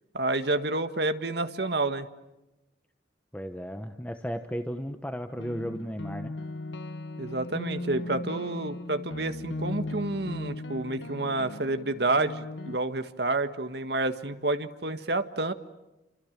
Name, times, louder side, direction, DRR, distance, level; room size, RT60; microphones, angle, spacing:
voice 1, 0.1-2.1 7.2-15.5, right 2 dB, 60° right, 9 dB, 1.7 m, -29 dB
voice 2, 3.3-6.3, equal, 10° left, 7 dB, 1.1 m, -35 dB
sound 1, 5.4-12.8, left 2 dB, 80° left, 1.3 m, -37 dB
29.5 x 26.5 x 7.4 m, 0.98 s
head